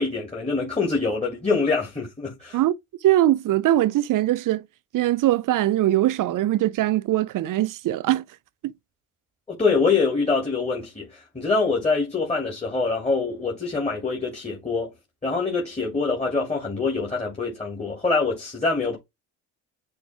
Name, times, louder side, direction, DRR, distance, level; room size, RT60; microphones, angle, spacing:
voice 1, 0.0-2.6 9.5-14.9 15.2-19.0, left 4 dB, 15° left, 2.7 m, -25 dB
voice 2, 3.0-4.6 4.9-8.2, right 14 dB, 45° right, 0.6 m, -21 dB
9.7 x 3.2 x 3.4 m
hypercardioid pair, 65°, 43 cm